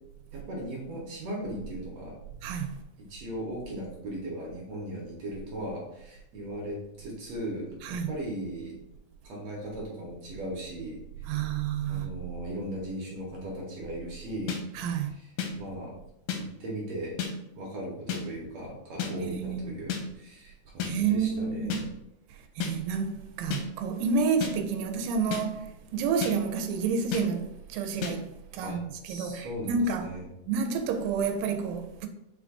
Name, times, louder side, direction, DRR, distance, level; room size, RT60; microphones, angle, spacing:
voice 1, 0.3-2.2 3.1-8.8 9.2-11.5 11.9-14.6 15.1-15.3 15.6-15.9 16.4-17.2 17.6-21.8 28.6-28.8 29.0-30.3, right 1 dB, 70° right, 1.7 m, -38 dB
voice 2, 2.4-2.8 7.8-8.1 11.3-12.1 14.7-15.1 19.2-19.7 20.8-21.8 22.3-30.1 30.5-32.1, right 5 dB, 85° right, 2.1 m, -30 dB
sound 1, 14.5-14.6 15.4-15.5 16.3-16.4 17.2-17.3 18.1-18.2 19.0-19.1 19.9-20.0 20.8-20.9 21.7-21.8 22.6-22.7 23.5-23.6 24.4-24.5 25.3-25.4 26.2-26.3 27.1-27.2 28.0-28.1, left 8 dB, 85° left, 2.2 m, -31 dB
5.8 x 2.4 x 3.5 m
omnidirectional pair, 3.7 m